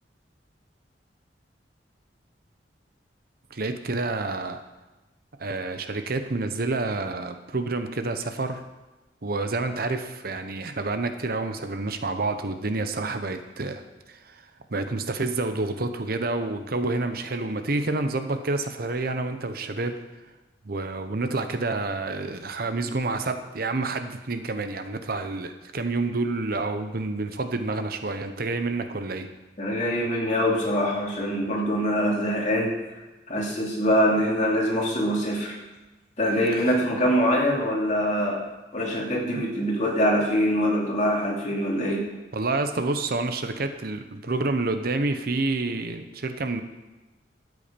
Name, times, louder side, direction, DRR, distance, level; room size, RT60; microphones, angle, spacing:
voice 1, 3.5-4.6 5.4-8.6 9.2-13.8 14.1-14.4 14.7-20.0 20.6-29.3 42.3-46.6, right 3 dB, 55° right, 8 dB, 0.8 m, -28 dB
voice 2, 29.6-32.7 33.3-35.6 36.2-38.4 38.7-42.1, equal, 40° left, -2 dB, 2.7 m, -24 dB
13.0 x 8.3 x 5.2 m, 1.1 s
head